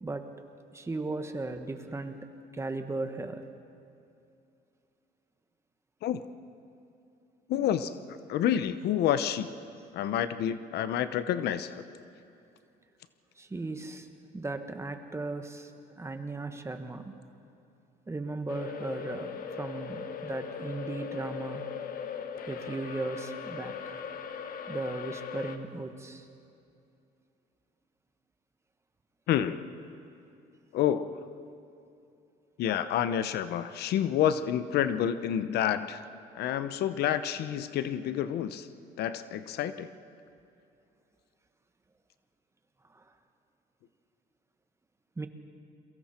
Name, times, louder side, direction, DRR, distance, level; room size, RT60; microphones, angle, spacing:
voice 1, 0.0-0.3 0.7-2.3 2.5-3.4 13.4-14.1 14.3-15.7 16.0-17.1 18.1-21.6 22.5-24.0 24.7-26.3 42.9-43.1 45.2-45.3, right 2 dB, 15° right, 7 dB, 1.5 m, -37 dB
voice 2, 7.5-8.0 8.3-9.5 9.9-11.8 29.3-29.7 30.7-31.3 32.6-36.0 36.3-38.7 39.0-39.9, left 10 dB, 75° left, 12 dB, 0.9 m, -29 dB
sound 1, 18.5-25.6, left 7 dB, 60° left, 1.5 m, -39 dB
29.5 x 23.0 x 4.5 m, 2.7 s
cardioid pair, 110°, 17 cm